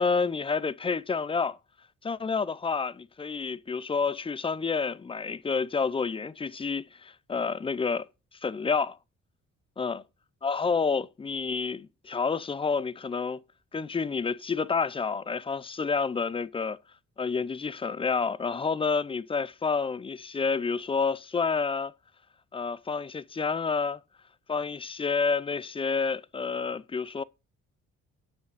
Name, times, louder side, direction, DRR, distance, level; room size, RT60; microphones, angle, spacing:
voice 1, 0.0-1.6 2.0-8.1 8.4-9.0 9.8-10.0 10.4-13.4 13.7-16.8 17.2-21.9 22.5-24.0 24.5-27.2, left 5 dB, 20° left, 0.5 m, -29 dB
7.1 x 6.4 x 5.5 m
cardioid pair, 90°, 30 cm